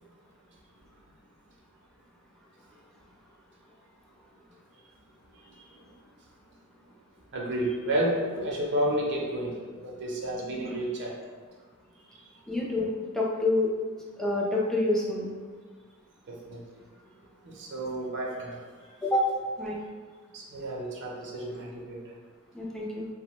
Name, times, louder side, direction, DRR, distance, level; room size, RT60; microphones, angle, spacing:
voice 1, 5.4-5.9 7.3-11.1 12.1-12.4 16.3-16.6 17.4-18.9 20.3-22.1, right 1 dB, 55° right, -2 dB, 0.5 m, -32 dB
voice 2, 12.5-13.7 14.2-15.3 19.0-19.3 19.6-19.8 22.5-23.1, left 2 dB, ahead, -4 dB, 0.3 m, -27 dB
3.0 x 2.1 x 3.0 m, 1.5 s
head